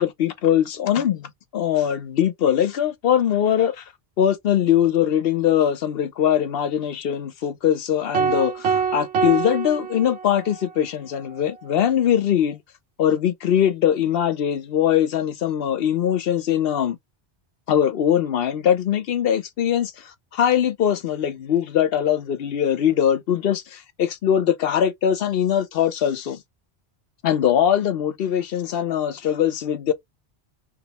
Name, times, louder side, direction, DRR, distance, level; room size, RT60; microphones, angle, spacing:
voice 1, 0.0-3.8 4.2-12.6 13.0-17.0 17.7-26.4 27.2-29.9, left 9 dB, 65° left, 0.8 m, -21 dB
sound 1, 8.1-10.6, right 6 dB, 80° right, 0.9 m, -25 dB
3.0 x 2.7 x 2.9 m
omnidirectional pair, 1.1 m